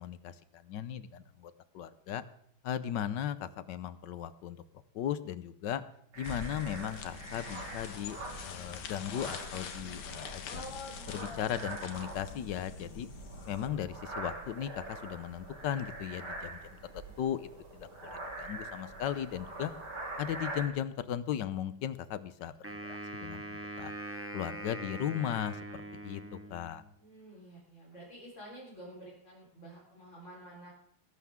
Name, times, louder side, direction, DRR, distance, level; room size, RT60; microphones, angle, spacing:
voice 1, 0.0-2.2 2.6-4.6 4.9-5.8 6.2-8.2 8.4-10.6 11.1-13.1 13.5-16.6 16.9-19.7 20.2-23.9 24.3-26.8, left 10 dB, 65° left, 14 dB, 1.3 m, -37 dB
sound 1, 6.1-20.7, right 2 dB, 80° right, 4.8 m, -44 dB
sound 2, 6.2-13.7, left 6 dB, 85° left, 2.2 m, -44 dB
voice 2, 10.5-12.1 27.0-30.7, equal, 35° left, -6 dB, 4.5 m, -49 dB
Wind instrument woodwind instrument, 22.6-26.9, right 1 dB, 5° right, 1.7 m, -42 dB
21.0 x 11.5 x 3.6 m, 0.71 s
omnidirectional pair, 2.3 m